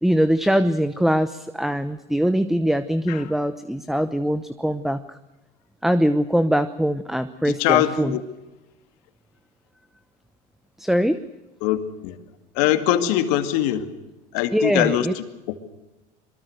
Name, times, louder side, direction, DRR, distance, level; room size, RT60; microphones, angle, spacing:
voice 1, 0.0-5.2 5.8-8.1 10.8-11.2 14.5-15.1, equal, ahead, 13 dB, 0.9 m, -22 dB
voice 2, 7.4-8.2 11.6-12.2 12.5-13.9 14.3-15.6, left 12 dB, 70° left, 9 dB, 2.3 m, -22 dB
23.5 x 22.5 x 6.6 m, 1.0 s
supercardioid pair, 100°, 21 cm